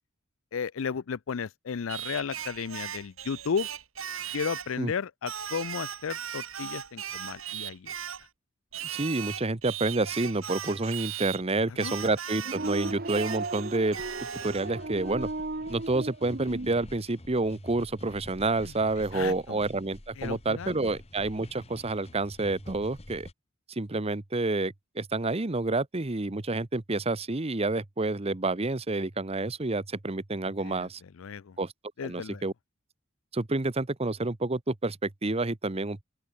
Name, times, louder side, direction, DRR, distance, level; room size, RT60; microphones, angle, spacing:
voice 1, 0.5-3.7 4.3-7.9 11.8-12.0 18.6-18.7 19.1-19.6 20.2-20.9 30.6-31.6 32.0-32.4, left 6 dB, 75° left, 0.5 m, -34 dB
Singing, 1.9-4.8 5.3-8.3 8.7-11.4 11.8-14.7, right 9 dB, 80° right, 4.2 m, -38 dB
voice 2, 8.8-14.0 14.4-15.3 15.7-23.3 23.7-31.0 31.6-31.7 32.0-32.5 33.3-36.0, right 2 dB, 30° right, 0.9 m, -29 dB
sound 1, 12.4-16.7, right 2 dB, 50° right, 1.5 m, -36 dB
sound 2, 13.8-23.3, left 1 dB, 30° left, 1.5 m, -48 dB
open air
head